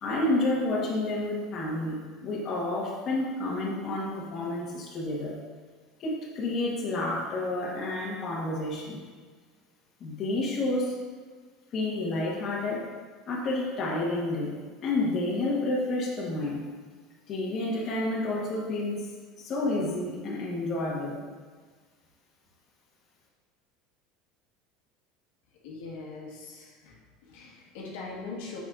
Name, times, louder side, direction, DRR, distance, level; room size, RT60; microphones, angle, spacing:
voice 1, 0.0-5.4 6.0-9.0 10.0-10.9 11.7-12.9 13.3-14.5 14.8-16.6 17.3-19.1 19.4-21.2, left 2 dB, 35° left, -5 dB, 1.2 m, -30 dB
voice 2, 25.6-27.0 27.2-28.6, left 3 dB, 80° left, -3 dB, 1.4 m, -41 dB
6.4 x 6.1 x 2.5 m, 1.5 s
cardioid pair, 160°, 0 cm